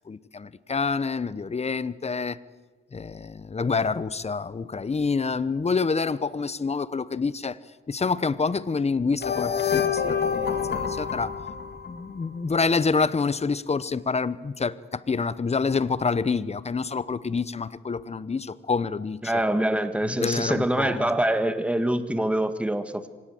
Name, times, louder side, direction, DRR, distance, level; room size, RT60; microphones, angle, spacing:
voice 1, 0.1-2.4 2.9-7.6 7.9-11.3 11.9-19.4 20.2-21.1, left 4 dB, 30° left, 17 dB, 0.9 m, -27 dB
sound 1, 9.2-12.3, left 7 dB, 55° left, 1.9 m, -27 dB
voice 2, 19.2-23.1, right 1 dB, 5° right, 10 dB, 1.6 m, -25 dB
25.0 x 18.5 x 7.8 m, 1.4 s
cardioid pair, 95°, 21 cm